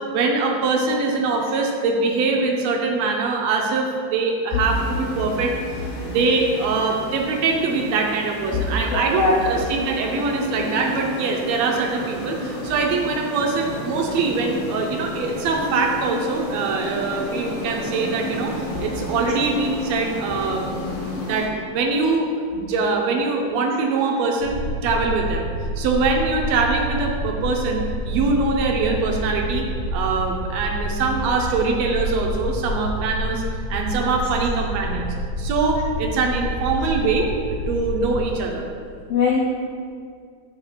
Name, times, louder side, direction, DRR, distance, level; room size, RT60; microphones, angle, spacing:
voice 1, 0.1-5.5 6.0-18.5 18.8-22.3 22.5-29.7 29.9-33.4 33.7-37.3 37.7-38.7, right 4 dB, 75° right, 1 dB, 1.7 m, -23 dB
sound 1, 4.7-21.5, left 1 dB, 60° left, 1.8 m, -32 dB
voice 2, 8.5-9.6 39.1-39.4, left 4 dB, 85° left, -2 dB, 1.3 m, -21 dB
sound 2, 24.4-38.2, equal, 45° left, 2.3 m, -28 dB
8.8 x 4.9 x 3.2 m, 2.2 s
omnidirectional pair, 3.5 m